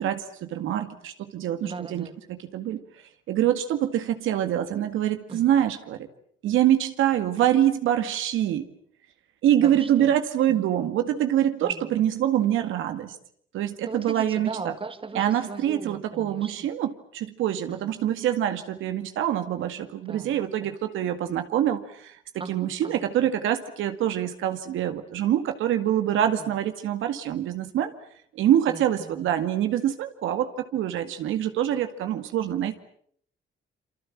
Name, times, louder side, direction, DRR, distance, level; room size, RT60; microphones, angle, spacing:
voice 1, 0.0-2.8 3.3-6.1 6.4-8.7 9.4-13.2 13.5-14.5 15.2-22.2 22.5-27.9 28.3-32.7, right 11 dB, 85° right, 8 dB, 2.1 m, -25 dB
voice 2, 1.6-2.2 5.3-5.4 9.6-10.1 10.5-10.7 11.6-12.1 13.8-16.7 17.7-17.9 20.1-20.7 22.4-23.0 26.4-26.6 28.7-29.3, right 4 dB, 25° right, 10 dB, 2.4 m, -39 dB
27.5 x 24.5 x 7.4 m, 0.63 s
cardioid pair, 90°, 20 cm